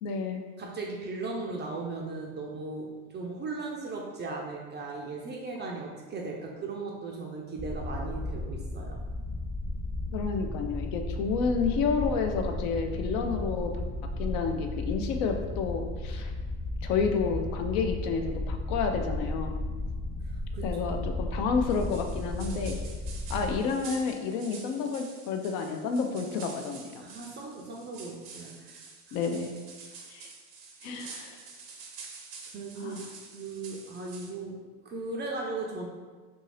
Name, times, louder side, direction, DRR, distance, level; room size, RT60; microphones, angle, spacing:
voice 1, 0.0-0.4 10.1-13.7 14.2-16.3 16.8-19.6 20.6-22.8 23.3-27.0 29.1-29.5 30.1-30.3 30.8-31.4 32.8-33.0, left 5 dB, 70° left, 5 dB, 0.6 m, -30 dB
voice 2, 0.6-9.0 20.2-21.0 27.0-29.3 29.9-30.0 32.5-33.0 33.3-35.9, right 3 dB, 25° right, -1 dB, 0.3 m, -37 dB
sound 1, 7.6-23.6, left 1 dB, 25° left, 0.8 m, -34 dB
sound 2, 21.7-34.3, right 4 dB, 85° right, 0.7 m, -48 dB
2.7 x 2.6 x 3.2 m, 1.4 s
hypercardioid pair, 80°, 46 cm